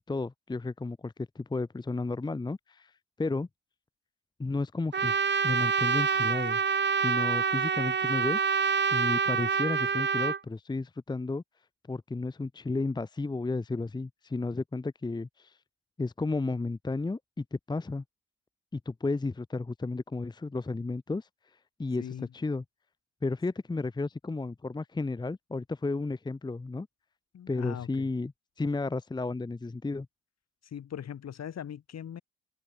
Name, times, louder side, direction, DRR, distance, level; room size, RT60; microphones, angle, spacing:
voice 1, 0.0-2.9 3.2-3.5 4.4-5.2 5.4-6.6 7.0-8.4 8.9-11.4 11.9-15.6 16.0-18.0 18.7-21.3 21.8-22.6 23.2-26.9 27.5-28.3 28.6-30.1, left 3 dB, 15° left, 0.8 m, -33 dB
Trumpet, 4.9-10.4, right 6 dB, 35° right, 2.0 m, -27 dB
voice 2, 27.3-28.1 30.7-32.2, left 9 dB, 60° left, 4.7 m, -40 dB
cardioid pair, 90°, 30 cm